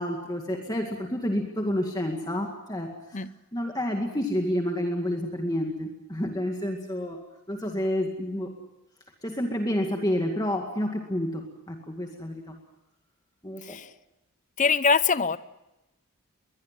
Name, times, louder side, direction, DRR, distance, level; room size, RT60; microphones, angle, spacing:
voice 1, 0.0-3.2 3.5-7.2 7.5-8.5 9.2-12.6 13.4-13.8, equal, 15° left, 2 dB, 2.1 m, -29 dB
voice 2, 14.6-15.4, left 5 dB, 35° left, 15 dB, 0.7 m, -23 dB
22.0 x 21.0 x 7.6 m, 0.95 s
head